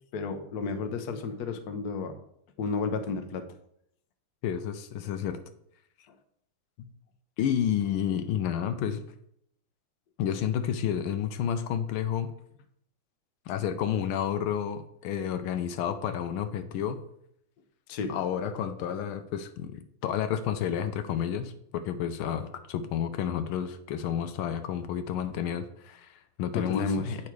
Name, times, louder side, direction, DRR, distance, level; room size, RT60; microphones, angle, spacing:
voice 1, 0.1-2.1 2.6-3.4 17.9-18.1 26.5-27.2, left 4 dB, 60° left, 7 dB, 1.1 m, -32 dB
voice 2, 4.4-5.4 6.8-6.9 7.4-9.0 10.2-12.3 13.5-17.0 18.1-27.2, left 9 dB, 80° left, 10 dB, 1.5 m, -30 dB
8.6 x 5.8 x 4.7 m, 0.72 s
omnidirectional pair, 2.3 m